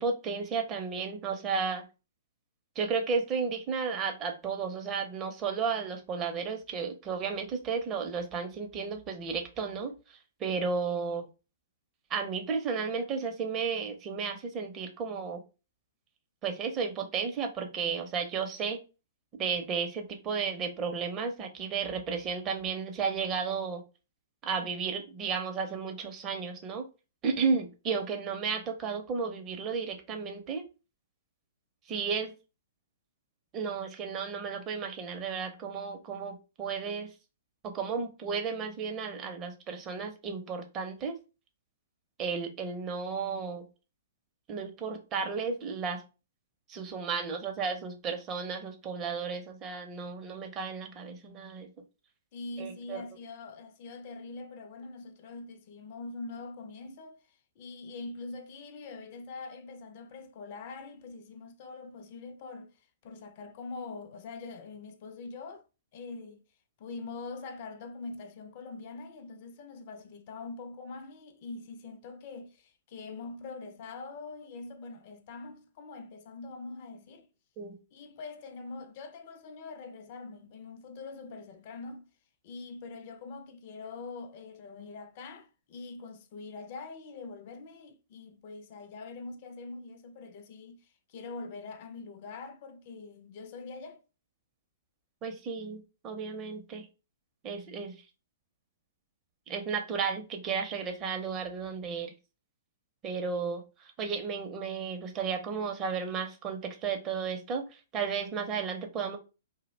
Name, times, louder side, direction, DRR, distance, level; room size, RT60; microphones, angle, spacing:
voice 1, 0.0-1.8 2.8-11.3 12.1-15.4 16.4-18.8 19.4-23.8 24.4-26.8 27.2-30.6 31.9-32.3 33.5-37.1 37.6-41.2 42.2-43.6 44.5-46.0 46.7-51.7 52.6-53.0 77.6-77.8 95.2-96.9 97.4-98.0 99.5-102.1 103.0-103.6 104.0-109.2, right 5 dB, 25° right, 0.5 m, -33 dB
voice 2, 52.3-62.7 63.0-65.6 65.9-66.4 66.8-77.3 77.9-82.1 82.4-94.0, left 3 dB, 45° left, 0.4 m, -43 dB
2.3 x 2.0 x 3.2 m
figure-of-eight pair, 115°, 0 cm